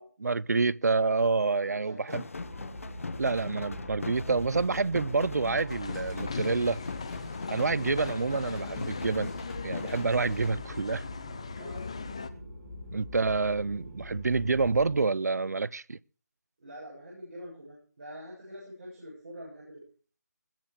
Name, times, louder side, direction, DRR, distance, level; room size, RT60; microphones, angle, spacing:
voice 1, 0.2-2.2 3.2-6.8 7.5-9.3 9.6-11.0 12.9-16.0, right 4 dB, 70° right, 0.6 m, -28 dB
voice 2, 1.6-2.2 11.6-11.9 16.6-19.8, equal, 35° right, 7.9 m, -45 dB
sound 1, 2.0-10.5, left 4 dB, 55° left, 0.9 m, -40 dB
sound 2, 2.3-15.0, left 1 dB, 15° right, 6.2 m, -43 dB
sound 3, 5.7-12.3, left 5 dB, 20° left, 0.5 m, -39 dB
21.0 x 7.6 x 4.8 m
figure-of-eight pair, 175°, 9 cm